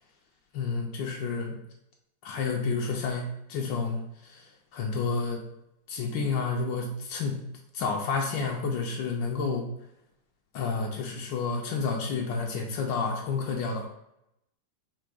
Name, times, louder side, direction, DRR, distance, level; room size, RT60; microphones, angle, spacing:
voice 1, 0.5-1.6 2.2-5.4 5.9-7.4 7.7-9.7 10.5-13.9, left 4 dB, 80° left, 1 dB, 1.3 m, -30 dB
4.7 x 2.2 x 4.6 m, 0.80 s
omnidirectional pair, 2.0 m